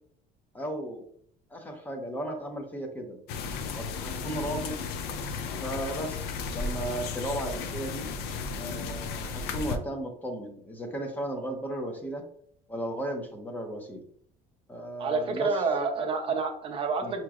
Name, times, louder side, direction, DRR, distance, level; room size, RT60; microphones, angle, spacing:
voice 1, 0.5-1.0 1.5-3.2 3.7-4.8 5.6-8.1 8.6-12.2 12.7-14.0 14.7-15.5 17.0-17.1, right 1 dB, 10° left, 4 dB, 0.5 m, -35 dB
sound 1, 3.3-9.8, left 4 dB, 70° left, 0.5 m, -34 dB
voice 2, 15.0-17.2, right 4 dB, 30° right, 4 dB, 0.5 m, -29 dB
5.9 x 2.9 x 2.3 m, 0.64 s
cardioid pair, 180°, 17 cm